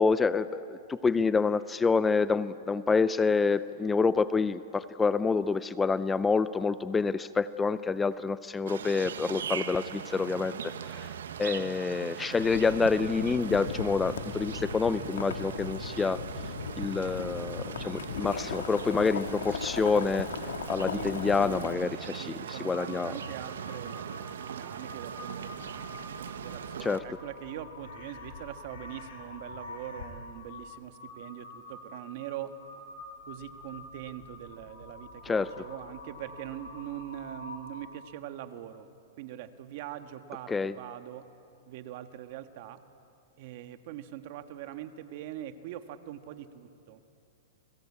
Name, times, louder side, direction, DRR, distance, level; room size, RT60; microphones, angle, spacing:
voice 1, 0.0-16.2 16.8-20.3 20.7-23.1 26.8-27.0 35.3-35.5 40.5-40.7, left 4 dB, 10° left, 15 dB, 0.5 m, -27 dB
sound 1, 8.7-27.0, right 8 dB, 85° right, 1.4 m, -40 dB
Boiling, 12.4-21.7, left 7 dB, 90° left, 1.7 m, -38 dB
voice 2, 20.9-32.5 33.3-38.9 39.2-41.2 41.7-42.8 43.4-47.0, right 12 dB, 50° right, 8 dB, 1.6 m, -43 dB
Crow, 22.5-38.0, left 2 dB, 75° left, 5.7 m, -47 dB
29.0 x 21.5 x 8.6 m, 2.8 s
hypercardioid pair, 140°, 0 cm